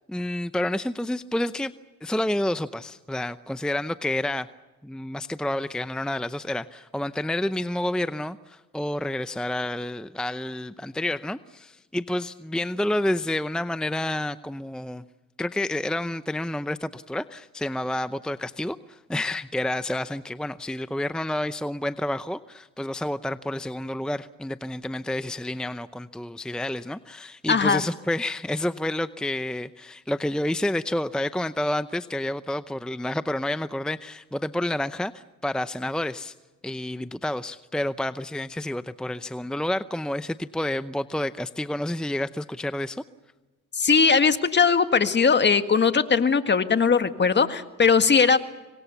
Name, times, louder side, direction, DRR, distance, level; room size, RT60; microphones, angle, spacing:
voice 1, 0.1-1.7 2.0-4.5 4.8-15.0 15.4-36.3 36.6-43.0, left 1 dB, 5° left, 12 dB, 0.7 m, -29 dB
voice 2, 27.5-27.8 43.7-48.4, left 5 dB, 35° left, 9 dB, 1.8 m, -20 dB
26.5 x 23.5 x 7.0 m, 1.2 s
cardioid pair, 90°, 30 cm